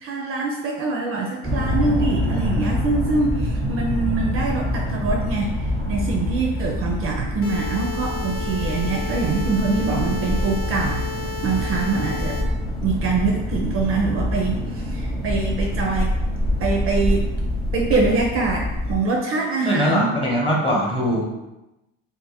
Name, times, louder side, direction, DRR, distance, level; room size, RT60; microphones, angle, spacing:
voice 1, 0.0-11.0 11.4-12.5 12.8-16.1 16.6-17.3 17.7-20.1, right 3 dB, 40° right, 1 dB, 0.5 m, -24 dB
sound 1, 1.4-19.0, left 1 dB, ahead, 0.7 m, -25 dB
sound 2, 7.4-12.4, left 3 dB, 70° left, 0.9 m, -33 dB
voice 2, 19.7-21.2, equal, 15° left, -3 dB, 1.0 m, -21 dB
2.5 x 2.5 x 4.1 m, 0.96 s
cardioid pair, 125°, 35 cm